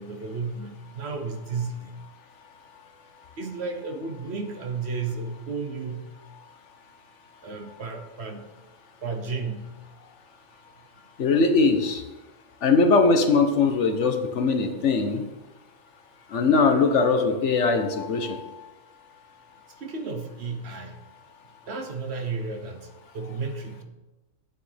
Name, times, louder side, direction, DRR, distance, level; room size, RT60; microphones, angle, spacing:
voice 1, 0.0-2.0 3.4-6.1 7.4-8.5 9.0-9.7 19.8-21.0 21.7-22.9 23.1-23.8, right 4 dB, 55° right, 5 dB, 1.1 m, -33 dB
voice 2, 11.2-12.0 12.6-15.2 16.3-18.5, left 4 dB, 65° left, 6 dB, 1.1 m, -21 dB
9.3 x 9.0 x 3.4 m, 1.1 s
omnidirectional pair, 1.4 m